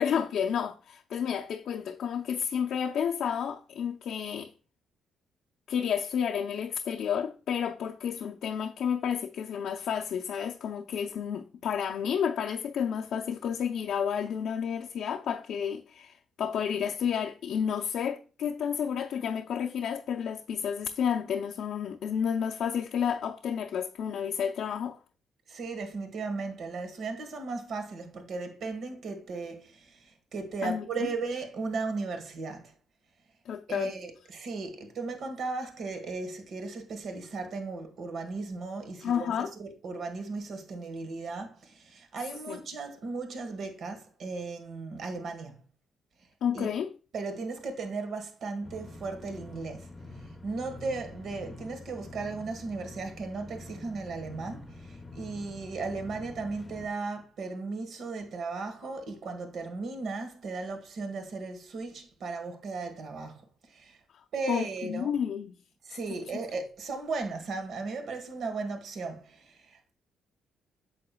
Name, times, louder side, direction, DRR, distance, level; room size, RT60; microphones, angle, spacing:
voice 1, 0.0-4.5 5.7-25.0 30.6-31.1 33.5-33.9 39.0-39.5 42.5-42.6 46.4-46.9 64.5-65.5 66.1-66.2, left 8 dB, 70° left, 0.5 m, -31 dB
voice 2, 25.5-32.7 33.7-45.6 46.5-46.7 47.1-49.9 50.2-64.0 64.3-65.1 65.8-69.9, right 3 dB, 65° right, 1.5 m, -36 dB
sound 1, 48.6-56.9, left 2 dB, 25° left, 0.8 m, -46 dB
8.5 x 6.5 x 2.3 m
cardioid pair, 90°, 0 cm